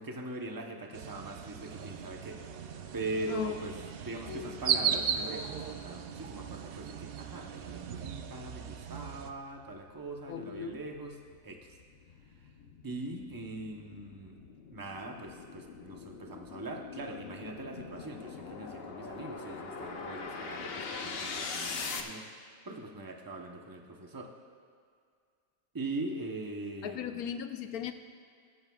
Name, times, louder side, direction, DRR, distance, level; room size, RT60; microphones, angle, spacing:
voice 1, 0.0-2.4 2.9-3.8 4.0-11.2 11.4-11.6 12.8-14.4 14.7-22.2 22.6-24.3 25.7-27.2, right 2 dB, 20° right, 1 dB, 0.8 m, -41 dB
sound 1, 0.9-9.3, right 7 dB, 60° right, 0.6 m, -37 dB
voice 2, 4.3-4.6 10.3-10.8 26.8-27.9, left 8 dB, 85° left, 8 dB, 1.2 m, -37 dB
sound 2, 8.5-22.0, left 4 dB, 50° left, 0.9 m, -43 dB
21.5 x 10.5 x 2.4 m, 2.2 s
omnidirectional pair, 1.5 m